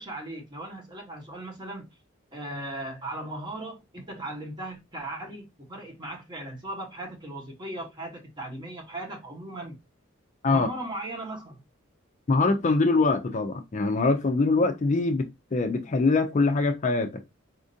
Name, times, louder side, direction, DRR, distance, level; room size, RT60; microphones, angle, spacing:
voice 1, 0.0-1.9 2.3-9.8 10.5-11.6, right 1 dB, 20° right, 1.0 m, -37 dB
voice 2, 12.3-17.2, left 3 dB, 35° left, 0.4 m, -23 dB
4.2 x 2.5 x 2.6 m
head